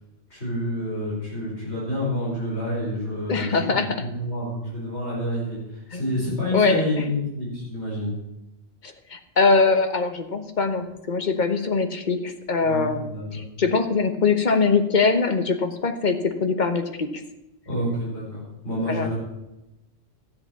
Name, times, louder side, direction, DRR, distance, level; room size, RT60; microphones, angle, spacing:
voice 1, 0.3-8.2 12.6-13.5 17.7-19.1, left 1 dB, 60° left, -6 dB, 5.4 m, -28 dB
voice 2, 3.3-4.0 5.9-6.0 6.5-7.1 8.8-17.1 18.9-19.1, left 4 dB, 40° left, 8 dB, 1.2 m, -22 dB
13.5 x 7.9 x 7.1 m, 0.91 s
omnidirectional pair, 1.3 m